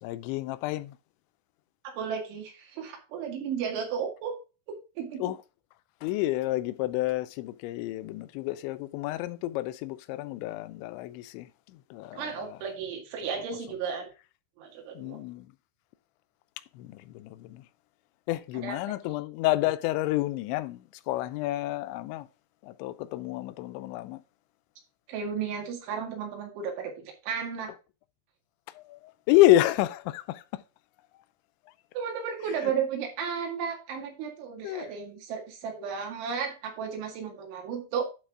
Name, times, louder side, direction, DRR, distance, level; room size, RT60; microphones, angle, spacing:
voice 1, 0.0-1.0 5.2-5.4 6.0-12.6 15.0-15.5 16.7-17.7 18.3-22.3 22.6-24.2 28.7-30.6 32.6-32.7 34.6-34.9, left 16 dB, 85° left, 2.9 m, -29 dB
voice 2, 1.8-4.3 4.7-5.3 12.1-14.1 14.6-15.2 18.5-18.9 25.1-27.7 31.9-38.0, right 7 dB, 80° right, 4.5 m, -34 dB
11.5 x 4.0 x 4.8 m
omnidirectional pair, 5.3 m